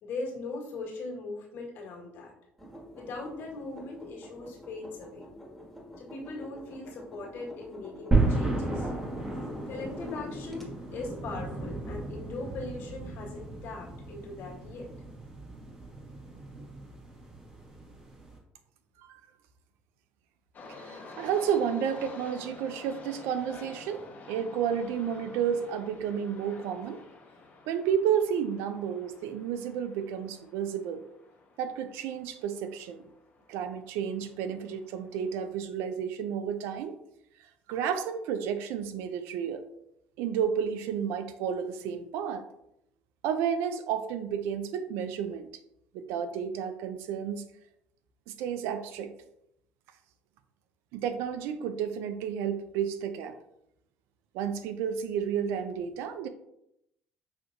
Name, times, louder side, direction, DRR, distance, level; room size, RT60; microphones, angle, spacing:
voice 1, 0.0-2.3 2.9-5.3 6.0-8.9 9.6-14.9, left 3 dB, 65° left, -2 dB, 1.6 m, -40 dB
sound 1, 2.6-10.6, left 1 dB, 5° left, 1.6 m, -47 dB
sound 2, 8.1-18.4, right 2 dB, 20° right, 1.5 m, -33 dB
sound 3, 20.5-35.5, left 3 dB, 45° left, 1.1 m, -50 dB
voice 2, 20.8-27.0 27.7-31.0 31.6-33.1 33.5-37.0 37.7-39.6 40.2-42.4 43.2-45.5 45.9-47.5 48.3-49.1 50.9-53.4 54.3-56.3, right 8 dB, 80° right, 10 dB, 0.4 m, -31 dB
6.0 x 2.9 x 2.6 m, 0.79 s
supercardioid pair, 75°, 4 cm